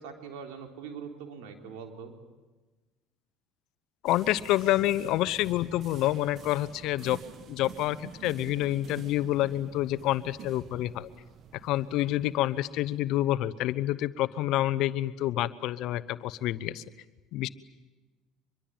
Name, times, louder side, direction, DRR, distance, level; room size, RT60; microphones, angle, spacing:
voice 1, 0.0-2.1, right 6 dB, 80° right, 4 dB, 3.7 m, -42 dB
voice 2, 4.0-7.2 7.5-11.1 11.6-16.8 17.3-17.5, left 14 dB, 65° left, 16 dB, 1.0 m, -28 dB
sound 1, 4.1-13.3, right 8 dB, 50° right, 1.3 m, -49 dB
24.5 x 22.5 x 9.0 m, 1.2 s
supercardioid pair, 90°, 0 cm